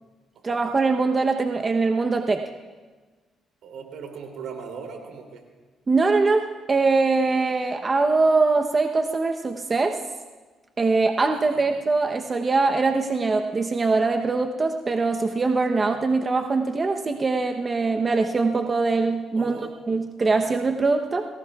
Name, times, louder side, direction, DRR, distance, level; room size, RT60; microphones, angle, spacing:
voice 1, 0.4-2.5 5.9-10.0 10.8-19.6 19.9-21.3, right 3 dB, 30° right, 4 dB, 0.9 m, -22 dB
voice 2, 3.6-5.4 11.5-11.7 19.4-19.7, right 6 dB, 75° right, 2 dB, 3.0 m, -38 dB
29.0 x 19.5 x 2.4 m, 1.3 s
cardioid pair, 90°, 0 cm